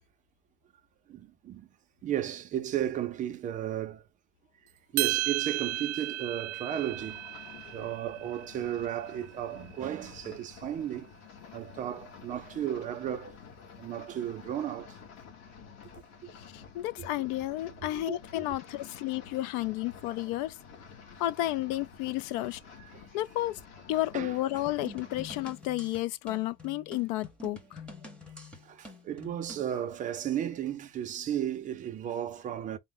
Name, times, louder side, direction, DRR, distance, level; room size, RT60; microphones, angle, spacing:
voice 1, 1.1-1.7 2.0-4.0 4.9-7.2 7.7-11.1 11.5-13.4 13.8-15.0 17.9-18.2 22.9-23.1 24.1-24.4 28.6-32.8, right 10 dB, 25° right, 0.4 m, -34 dB
sound 1, 5.0-9.4, right 17 dB, 80° right, 0.5 m, -34 dB
sound 2, 6.7-25.5, left 6 dB, 50° left, 1.3 m, -50 dB
voice 2, 16.5-20.6 21.2-22.6 23.1-23.6 23.9-27.8, left 15 dB, 75° left, 0.5 m, -32 dB
sound 3, 24.7-29.7, left 2 dB, 5° left, 0.8 m, -47 dB
4.4 x 2.1 x 3.7 m
cardioid pair, 175°, 33 cm